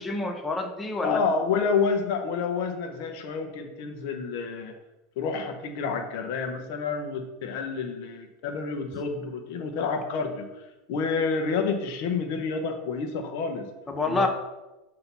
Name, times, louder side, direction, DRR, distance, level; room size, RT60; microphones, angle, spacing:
voice 1, 0.0-1.2 13.9-14.3, left 2 dB, 10° left, 4 dB, 0.6 m, -28 dB
voice 2, 1.0-4.7 5.2-10.5 10.9-13.7 14.0-14.3, left 5 dB, 55° left, 5 dB, 1.0 m, -29 dB
7.8 x 2.9 x 5.4 m, 1.0 s
supercardioid pair, 170°, 0 cm